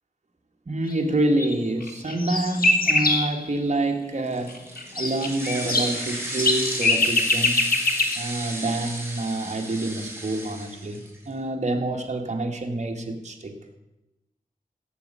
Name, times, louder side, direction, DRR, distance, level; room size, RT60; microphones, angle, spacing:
voice 1, 0.7-4.6 4.9-7.7 8.1-13.5, right 2 dB, 50° right, 3 dB, 1.6 m, -27 dB
sound 1, 1.4-1.5 1.8-3.4 4.6-8.2, left 2 dB, 75° left, 1.4 m, -23 dB
sound 2, 4.3-11.2, right 1 dB, 15° right, 3.2 m, -34 dB
16.5 x 7.2 x 5.5 m, 0.96 s
wide cardioid pair, 75°, 15 cm